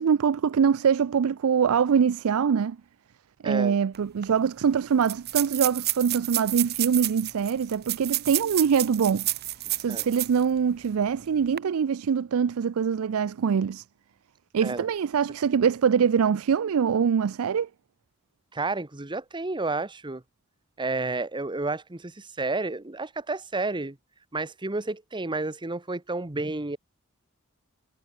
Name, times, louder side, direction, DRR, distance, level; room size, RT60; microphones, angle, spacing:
voice 1, 0.0-2.8 3.4-9.3 9.8-13.8 14.5-17.7, right 7 dB, 70° right, 0.4 m, -24 dB
voice 2, 3.4-3.7 9.9-10.0 14.6-14.9 18.5-20.2 20.8-24.0 24.3-26.8, right 3 dB, 20° right, 1.2 m, -31 dB
sound 1, 3.9-4.0 4.2-4.3 5.0-10.4 10.8-10.9 11.4-11.6, right 15 dB, 50° right, 1.6 m, -30 dB
head